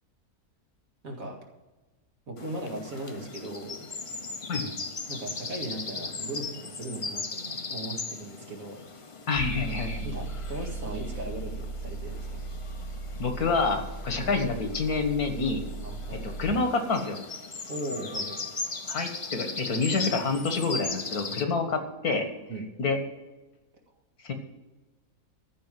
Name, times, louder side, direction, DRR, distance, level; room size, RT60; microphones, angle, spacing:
voice 1, 1.0-1.4 2.3-3.9 5.1-8.9 10.0-12.5 14.2-14.3 15.8-16.4 17.7-18.4 21.3-21.7 22.5-22.7, right 1 dB, 65° right, 1 dB, 2.4 m, -38 dB
sound 1, 2.4-21.4, left 4 dB, 30° left, 0.6 m, -39 dB
voice 2, 9.3-10.0 13.2-15.6 16.2-17.2 18.9-22.3 22.8-23.0 24.2-24.3, left 4 dB, 80° left, 6 dB, 2.0 m, -27 dB
sound 2, 9.3-16.5, right 2 dB, 50° right, 1.9 m, -37 dB
14.0 x 5.1 x 9.1 m, 1.2 s
omnidirectional pair, 1.6 m